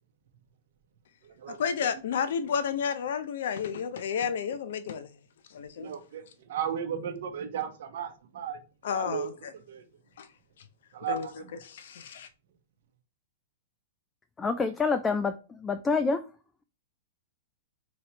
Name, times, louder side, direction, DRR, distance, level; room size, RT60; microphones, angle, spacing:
voice 1, 1.6-5.1 5.5-5.9 8.8-9.5 10.2-10.3 11.0-11.3 11.6-12.3, left 7 dB, 70° left, 0.5 m, -31 dB
voice 2, 5.8-6.2 6.5-8.6 8.9-9.3 9.7-9.8 10.9-11.5, right 8 dB, 70° right, 0.7 m, -34 dB
voice 3, 14.4-16.2, left 4 dB, 15° left, 0.3 m, -27 dB
3.0 x 2.9 x 2.9 m
hypercardioid pair, 125°, 0 cm